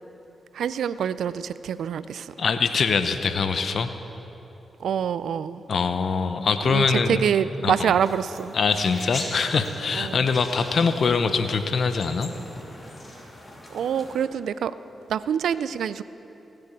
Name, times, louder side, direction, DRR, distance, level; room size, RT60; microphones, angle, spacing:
voice 1, 0.5-2.3 4.8-5.6 6.7-8.5 9.9-10.3 13.7-14.8 15.1-16.0, right 8 dB, 80° right, 15 dB, 0.4 m, -26 dB
voice 2, 2.4-3.9 5.7-7.2 7.6-7.9 8.5-12.3, left 5 dB, 65° left, 9 dB, 0.7 m, -23 dB
sound 1, 8.0-14.2, left 1 dB, 30° left, 2.7 m, -41 dB
17.0 x 6.9 x 8.2 m, 3.0 s
supercardioid pair, 45°, 0 cm